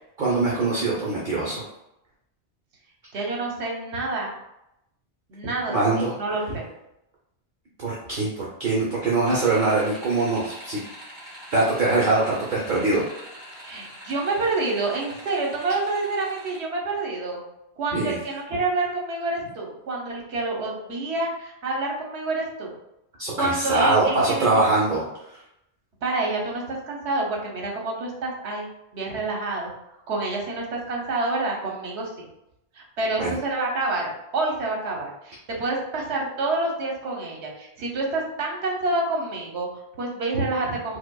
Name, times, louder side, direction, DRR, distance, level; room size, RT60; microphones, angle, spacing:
voice 1, 0.2-1.6 5.7-6.2 7.8-10.8 11.5-13.0 17.9-18.2 23.2-25.0 33.2-33.4, right 3 dB, 50° right, -5 dB, 0.8 m, -23 dB
voice 2, 3.1-4.3 5.3-6.7 13.6-17.4 17.8-22.7 23.4-24.5 26.0-28.7 28.9-29.7 30.1-32.3 32.7-41.0, right 2 dB, 75° right, -1 dB, 1.1 m, -28 dB
sound 1, 9.2-16.6, equal, 25° right, 1.6 m, -43 dB
4.8 x 2.2 x 2.3 m, 0.84 s
omnidirectional pair, 1.2 m